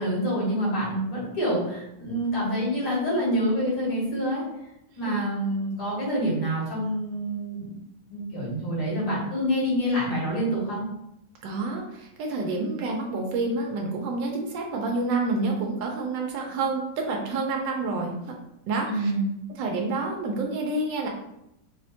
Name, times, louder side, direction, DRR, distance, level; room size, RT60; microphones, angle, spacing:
voice 1, 0.0-4.4 5.0-7.7 8.1-10.8 18.8-19.3, equal, 80° left, -6 dB, 2.1 m, -27 dB
voice 2, 11.4-18.1 18.7-19.1 19.6-21.1, right 3 dB, 90° right, 0 dB, 1.3 m, -28 dB
4.2 x 2.1 x 2.7 m, 0.83 s
omnidirectional pair, 2.0 m